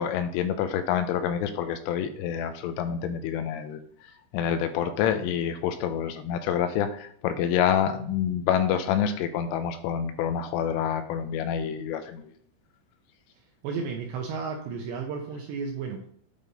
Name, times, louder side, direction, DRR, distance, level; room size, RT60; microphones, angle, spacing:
voice 1, 0.0-3.8 4.3-12.3, left 9 dB, 80° left, 8 dB, 3.1 m, -27 dB
voice 2, 13.6-16.1, right 5 dB, 80° right, 2 dB, 2.6 m, -33 dB
9.5 x 5.2 x 4.0 m, 0.62 s
omnidirectional pair, 5.9 m